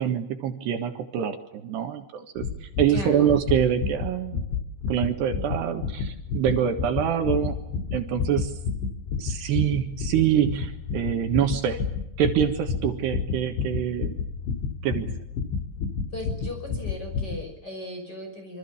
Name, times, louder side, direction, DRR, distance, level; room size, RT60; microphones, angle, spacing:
voice 1, 0.0-4.4 4.9-7.6 7.9-8.5 9.2-11.8 12.2-14.1 14.8-15.1, right 9 dB, 70° right, 6 dB, 3.5 m, -25 dB
sound 1, 2.4-17.4, left 5 dB, 80° left, 5.0 m, -31 dB
voice 2, 2.9-3.3 16.1-18.6, left 1 dB, 20° left, 3 dB, 6.4 m, -37 dB
27.5 x 25.0 x 7.2 m, 0.83 s
omnidirectional pair, 5.3 m